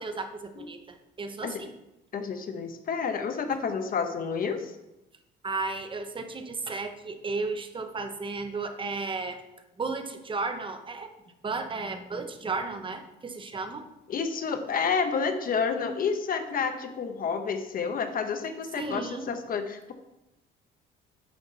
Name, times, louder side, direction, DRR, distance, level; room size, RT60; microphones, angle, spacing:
voice 1, 0.0-1.7 5.4-9.4 9.8-11.1 11.4-13.8 18.8-19.4, right 3 dB, 25° right, 7 dB, 0.9 m, -34 dB
voice 2, 2.1-4.7 14.1-19.9, left 5 dB, 45° left, 7 dB, 1.1 m, -29 dB
9.7 x 5.9 x 4.1 m, 0.92 s
cardioid pair, 115°, 20 cm